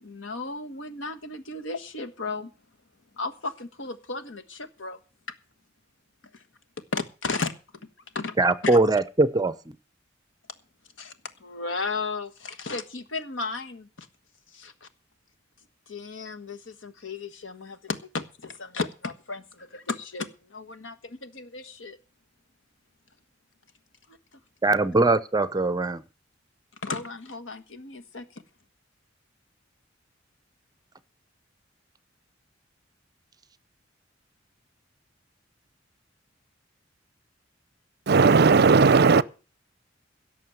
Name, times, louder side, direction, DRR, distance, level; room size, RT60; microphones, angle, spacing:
voice 1, 0.0-2.5 3.1-5.0 6.3-6.4 6.9-7.5 8.1-8.4 8.6-8.8 11.0-11.1 11.4-14.1 14.5-14.9 15.9-22.0 24.1-24.2 24.7-24.9 26.8-28.4, left 3 dB, 75° left, 1.5 m, -34 dB
voice 2, 8.4-9.5 24.6-26.0, right 2 dB, 20° right, 0.7 m, -21 dB
voice 3, 38.1-39.2, right 4 dB, 55° right, 0.6 m, -16 dB
17.0 x 6.6 x 7.8 m
head